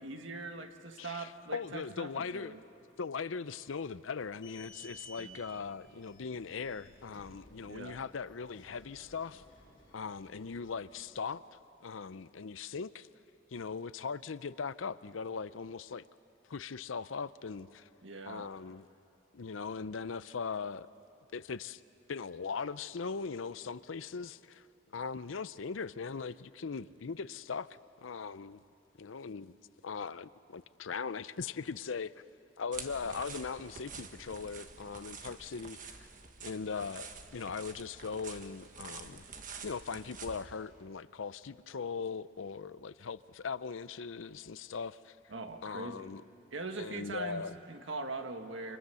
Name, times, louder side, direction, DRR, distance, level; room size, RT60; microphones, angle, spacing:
voice 1, 0.0-2.6 5.2-5.4 7.6-8.0 18.0-18.5 45.3-46.1 46.5-48.8, right 3 dB, 75° right, 1.6 m, -42 dB
voice 2, 1.0-2.6 3.0-9.4 9.9-11.4 11.8-13.1 13.5-16.0 16.5-17.9 18.3-18.9 19.3-20.9 21.3-21.8 22.1-24.6 24.9-28.6 29.0-29.5 29.8-32.1 32.6-36.1 36.4-39.3 39.6-45.2 45.6-46.2 46.8-47.5, left 5 dB, 85° left, 0.6 m, -40 dB
sound 1, 4.2-11.0, equal, 25° left, 7.3 m, -56 dB
sound 2, 32.7-40.4, right 5 dB, 40° right, 1.4 m, -48 dB
28.5 x 26.5 x 7.0 m
head